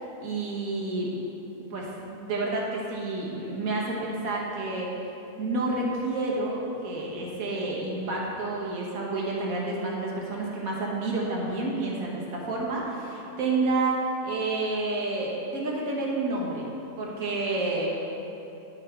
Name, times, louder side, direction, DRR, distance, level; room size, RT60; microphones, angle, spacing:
voice 1, 0.2-1.2 1.7-4.9 5.4-16.7 17.0-17.9, right 2 dB, 60° right, -3 dB, 1.6 m, -29 dB
9.1 x 4.9 x 4.4 m, 2.9 s
omnidirectional pair, 1.7 m